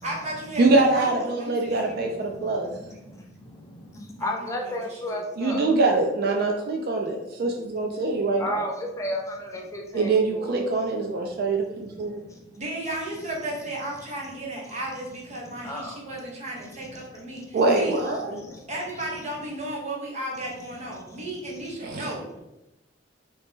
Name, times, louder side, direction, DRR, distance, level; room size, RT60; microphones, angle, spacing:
voice 1, 0.0-2.2 4.2-5.2 12.6-18.0 18.3-22.4, right 1 dB, 40° right, -3 dB, 1.0 m, -35 dB
voice 2, 0.6-2.7 5.4-8.6 9.9-12.2 17.5-18.4 21.8-22.1, right 3 dB, 55° right, 2 dB, 0.4 m, -24 dB
voice 3, 2.3-5.8 8.4-10.7 12.3-12.4 15.6-16.0 16.8-17.4 18.4-18.6 21.1-21.6, left 1 dB, 15° left, 1 dB, 0.4 m, -34 dB
2.9 x 2.7 x 3.5 m, 0.94 s
head